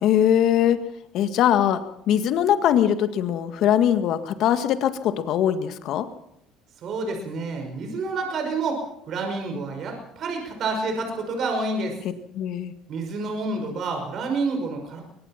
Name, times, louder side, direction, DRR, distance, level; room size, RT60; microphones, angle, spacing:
voice 1, 0.0-0.8 1.1-6.1 12.4-12.7, left 10 dB, 65° left, 10 dB, 1.9 m, -21 dB
voice 2, 6.8-12.0 12.9-15.0, right 3 dB, 55° right, 4 dB, 5.7 m, -28 dB
23.0 x 19.0 x 5.9 m, 0.79 s
supercardioid pair, 75°, 0 cm